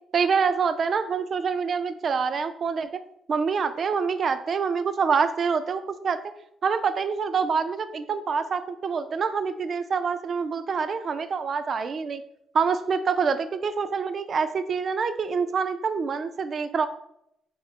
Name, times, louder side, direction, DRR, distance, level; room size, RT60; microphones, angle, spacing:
voice 1, 0.1-2.9 3.3-6.2 6.6-12.2 12.5-16.9, right 5 dB, 50° right, 11 dB, 0.3 m, -26 dB
3.5 x 2.9 x 3.2 m, 0.76 s
cardioid pair, 90°, 0 cm